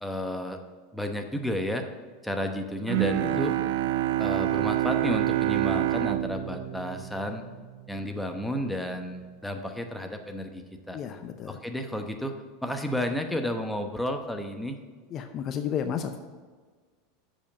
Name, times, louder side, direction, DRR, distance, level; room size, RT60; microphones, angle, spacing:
voice 1, 0.0-0.6 0.9-1.9 2.2-3.5 4.2-7.4 7.9-11.0 11.5-12.3 12.6-14.8, equal, 5° left, 4 dB, 0.9 m, -32 dB
Bowed string instrument, 2.9-8.0, right 14 dB, 70° right, 0.4 m, -27 dB
voice 2, 3.2-3.6 10.9-11.6 15.1-16.2, left 8 dB, 40° left, 7 dB, 0.6 m, -32 dB
7.1 x 5.1 x 7.0 m, 1.4 s
hypercardioid pair, 105°, 0 cm